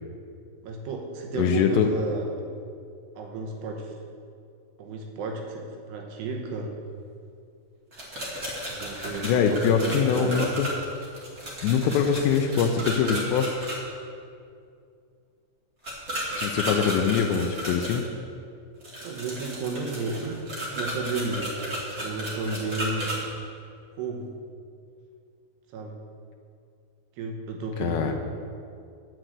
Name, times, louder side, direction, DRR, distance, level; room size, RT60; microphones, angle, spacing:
voice 1, 0.6-2.3 3.2-3.9 4.8-6.8 8.7-10.6 16.8-16.9 19.0-21.6 22.0-23.2 24.0-24.3 25.7-26.0 27.2-28.1, right 3 dB, 75° right, 2 dB, 2.8 m, -32 dB
voice 2, 1.4-1.9 8.5-8.6 9.2-10.7 11.6-13.6 16.4-18.1 27.8-28.1, left 7 dB, 85° left, 2 dB, 2.6 m, -23 dB
sound 1, 7.9-13.7 15.8-18.0 18.8-23.2, equal, 30° right, 1.5 m, -33 dB
9.9 x 7.6 x 7.9 m, 2.4 s
omnidirectional pair, 5.6 m